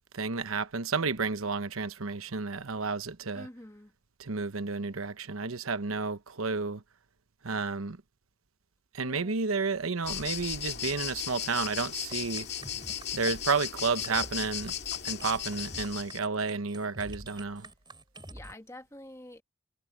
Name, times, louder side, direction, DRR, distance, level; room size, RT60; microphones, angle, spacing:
voice 1, 0.1-3.5 4.2-6.8 7.4-8.0 8.9-12.5 13.1-14.7 15.0-17.7, right 4 dB, 85° right, 1.0 m, -31 dB
voice 2, 3.3-3.9 9.0-9.4 18.3-19.4, left 1 dB, 15° left, 1.7 m, -47 dB
sound 1, 10.0-16.2, left 10 dB, 50° left, 2.2 m, -36 dB
sound 2, 12.1-18.5, right 2 dB, 20° right, 4.0 m, -47 dB
head